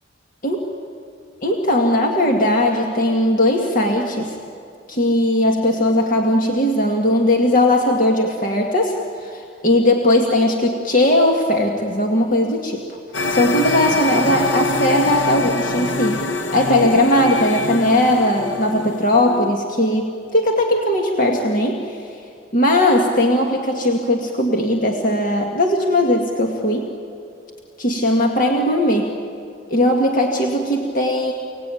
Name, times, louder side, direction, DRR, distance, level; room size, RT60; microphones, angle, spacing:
voice 1, 1.4-4.4 4.9-8.9 9.2-12.8 13.3-16.2 16.5-22.0 22.5-26.9 27.8-29.1 29.7-31.3, left 1 dB, 45° left, 1 dB, 2.0 m, -18 dB
sound 1, 13.1-19.5, left 3 dB, 70° left, 1.3 m, -25 dB
29.5 x 19.0 x 9.2 m, 2.6 s
head